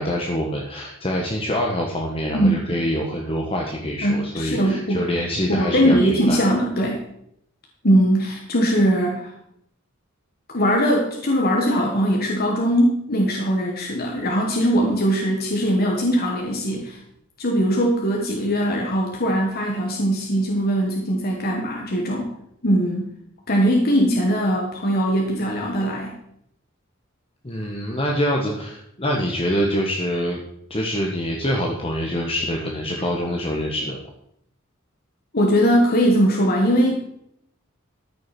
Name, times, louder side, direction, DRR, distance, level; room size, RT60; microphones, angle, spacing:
voice 1, 0.0-6.4 27.4-30.4 30.7-34.0, equal, 30° left, 0 dB, 1.4 m, -25 dB
voice 2, 2.3-2.7 4.0-5.1 5.5-7.0 7.8-9.3 10.5-17.0 17.4-22.3 22.6-23.1 23.5-26.2 35.3-37.0, equal, 50° left, 0 dB, 1.7 m, -20 dB
14.0 x 6.3 x 6.1 m, 0.72 s
head